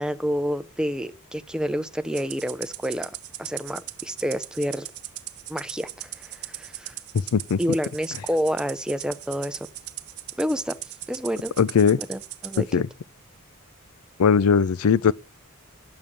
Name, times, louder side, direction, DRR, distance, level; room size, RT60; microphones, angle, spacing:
voice 1, 0.0-4.9 5.5-6.9 7.6-9.7 10.4-10.8 11.1-11.5 12.0-12.7, equal, 5° right, 0.6 m, -29 dB
Rattle (instrument), 2.1-12.6, right 15 dB, 85° right, 1.0 m, -38 dB
voice 2, 11.6-12.0 12.7-12.9 14.2-15.1, left 6 dB, 90° left, 0.5 m, -19 dB
11.0 x 6.9 x 7.4 m
head